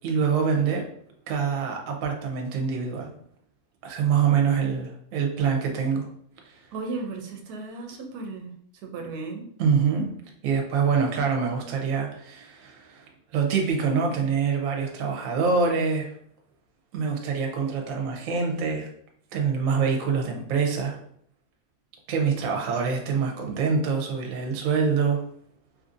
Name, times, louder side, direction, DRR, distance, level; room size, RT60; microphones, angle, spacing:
voice 1, 0.0-0.8 1.3-3.1 3.8-6.1 6.4-6.6 9.6-10.1 10.4-13.1 13.3-16.1 16.9-18.9 19.3-21.0 22.1-25.2, right 6 dB, 70° right, 1 dB, 1.0 m, -25 dB
voice 2, 6.7-8.5 8.8-9.4, right 3 dB, 90° right, 3 dB, 1.1 m, -35 dB
3.0 x 2.6 x 2.4 m, 0.64 s
omnidirectional pair, 1.6 m